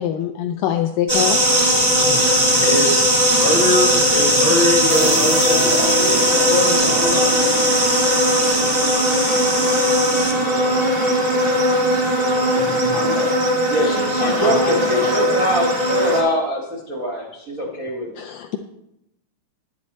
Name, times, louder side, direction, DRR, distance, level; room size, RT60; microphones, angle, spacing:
voice 1, 0.0-1.4 18.2-18.6, left 10 dB, 85° left, 1.9 m, -23 dB
sound 1, 1.1-16.2, equal, 30° right, 0.6 m, -18 dB
voice 2, 2.0-7.4 12.6-13.3 14.2-15.4, left 1 dB, 65° left, 1.2 m, -24 dB
sound 2, 4.9-14.5, equal, 45° left, 0.8 m, -33 dB
voice 3, 13.7-18.2, equal, 85° right, 0.7 m, -23 dB
10.5 x 10.0 x 4.2 m
omnidirectional pair, 4.4 m